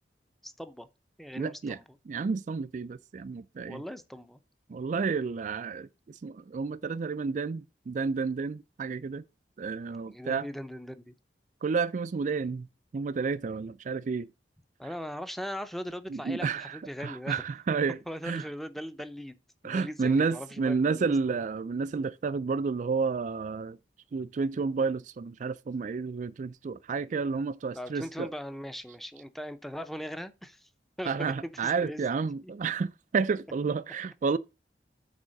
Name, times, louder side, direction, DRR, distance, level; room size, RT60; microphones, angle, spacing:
voice 1, 0.4-0.9 1.2-1.8 3.6-4.4 10.1-11.1 14.8-17.4 18.1-19.4 19.6-21.4 27.7-30.7 31.0-31.3 31.6-32.1, equal, ahead, 0.6 m, -39 dB
voice 2, 1.3-1.8 2.1-3.8 4.7-9.2 9.6-10.5 11.6-12.7 12.9-14.3 16.1-18.0 18.2-18.4 19.6-23.8 24.1-28.3 31.1-34.4, right 5 dB, 45° right, 0.3 m, -31 dB
8.4 x 3.6 x 6.3 m
head